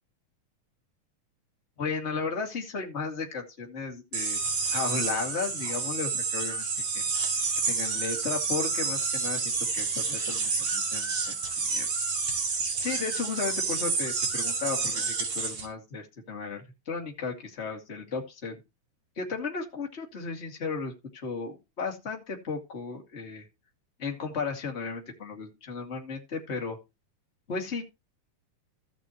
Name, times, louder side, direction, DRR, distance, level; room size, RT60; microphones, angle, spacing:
voice 1, 1.8-4.4 4.7-6.7 6.9-7.1 7.7-11.4 11.6-11.9 12.8-18.6 19.2-23.5 24.0-26.8 27.5-27.8, left 4 dB, 20° left, 1 dB, 2.4 m, -34 dB
sound 1, 4.1-15.7, right 4 dB, 50° right, 3.2 m, -29 dB
16.0 x 6.2 x 3.1 m, 0.24 s
omnidirectional pair, 3.7 m